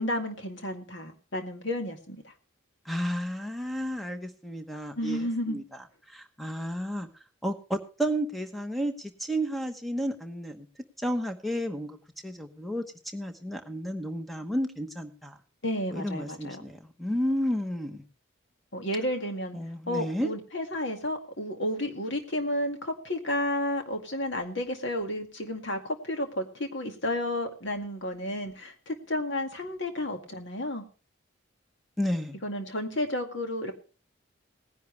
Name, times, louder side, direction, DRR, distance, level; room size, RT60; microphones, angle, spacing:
voice 1, 0.0-2.3 5.0-5.6 15.6-16.6 18.7-19.6 19.9-30.8 32.4-33.7, left 1 dB, 65° left, 4 dB, 2.1 m, -32 dB
voice 2, 2.8-5.6 6.1-7.1 7.4-10.7 11.0-12.0 12.2-12.8 13.1-15.4 15.9-18.0 19.5-20.3 32.0-32.4, equal, ahead, 6 dB, 1.1 m, -32 dB
18.5 x 10.5 x 3.3 m, 0.35 s
head